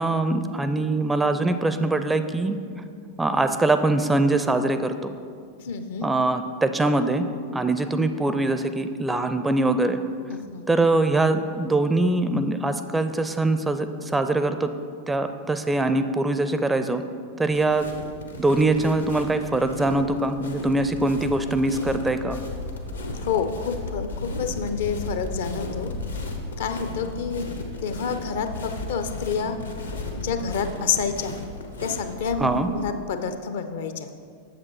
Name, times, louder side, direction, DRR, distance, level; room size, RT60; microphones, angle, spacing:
voice 1, 0.0-2.6 3.2-5.1 6.0-7.3 7.5-10.0 10.7-14.7 15.1-17.0 17.4-17.9 18.4-22.4 32.4-32.7, right 2 dB, 10° right, 9 dB, 0.4 m, -23 dB
voice 2, 5.6-6.1 10.3-10.7 23.2-25.9 26.6-27.5 27.8-29.6 30.1-31.3 31.8-34.1, left 6 dB, 60° left, 8 dB, 0.6 m, -28 dB
sound 1, 17.5-32.8, left 2 dB, 75° left, 1.0 m, -35 dB
8.0 x 7.1 x 4.7 m, 2.2 s
figure-of-eight pair, 90°, 0 cm